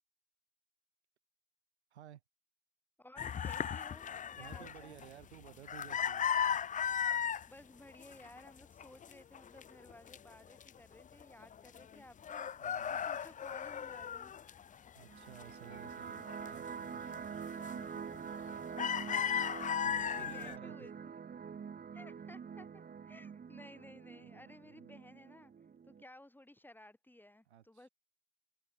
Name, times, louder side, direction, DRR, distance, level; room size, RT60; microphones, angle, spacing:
voice 1, 3.0-5.0 7.5-12.5 12.9-14.3 18.0-18.1 18.8-19.0 19.4-19.6 20.2-21.1 21.9-25.5 25.9-27.9, left 1 dB, 5° left, 6.0 m, -57 dB
sound 1, 3.2-7.5 7.9-8.5 8.8-10.2 10.6-10.7 11.0-12.0 12.2-15.0 15.4-16.5 16.9-17.1 17.6-18.0 18.3-20.6, left 8 dB, 25° left, 0.8 m, -36 dB
voice 2, 4.4-6.3 12.6-13.2 14.9-17.3 19.8-20.9 24.3-24.9 27.5-27.9, right 11 dB, 75° right, 5.5 m, -55 dB
sound 2, 15.1-26.0, right 6 dB, 25° right, 2.6 m, -46 dB
figure-of-eight pair, 70°, 33 cm